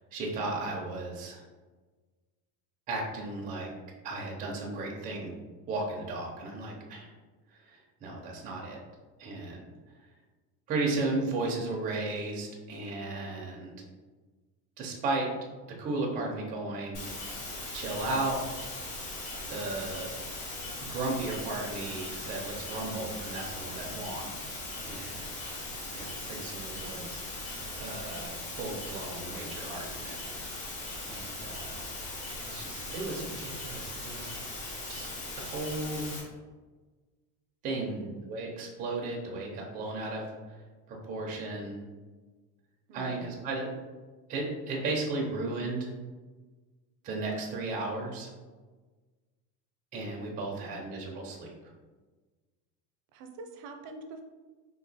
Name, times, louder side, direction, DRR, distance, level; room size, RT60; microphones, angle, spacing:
voice 1, 0.1-1.4 2.9-3.7 4.0-5.3 5.7-7.1 7.5-8.8 9.2-9.7 10.7-13.7 14.8-15.3 15.7-17.0 17.7-18.4 19.5-20.1 20.8-25.2 25.9-27.2 27.8-30.2 31.0-31.8 32.4-34.3 34.9-35.1 35.4-36.1 37.6-38.0 38.3-40.6 40.9-41.8 42.9-43.7 44.3-45.9 47.0-48.3 49.9-51.5, right 2 dB, 20° right, -1 dB, 0.4 m, -35 dB
sound 1, 16.9-36.2, left 2 dB, 55° left, 1.5 m, -39 dB
voice 2, 26.7-27.1 37.8-38.2 42.9-43.3 50.3-50.8 53.1-54.2, right 3 dB, 75° right, 5 dB, 0.6 m, -45 dB
2.9 x 2.4 x 4.0 m, 1.3 s
cardioid pair, 175°, 38 cm